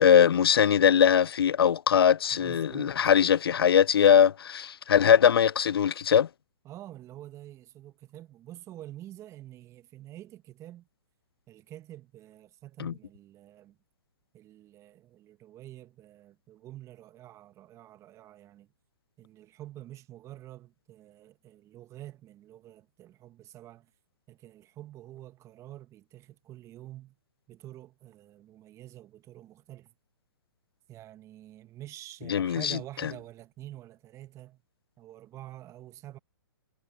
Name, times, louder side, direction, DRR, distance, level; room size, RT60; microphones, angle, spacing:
voice 1, 0.0-6.3 12.8-12.9 32.3-32.8, left 8 dB, 75° left, 0.4 m, -21 dB
voice 2, 2.3-3.0 6.6-10.9 11.5-13.8 14.3-18.7 19.2-23.9 24.3-27.2 27.5-29.9 30.9-34.6 35.0-36.2, right 14 dB, 25° right, 1.5 m, -47 dB
hypercardioid pair, 125°, 13 cm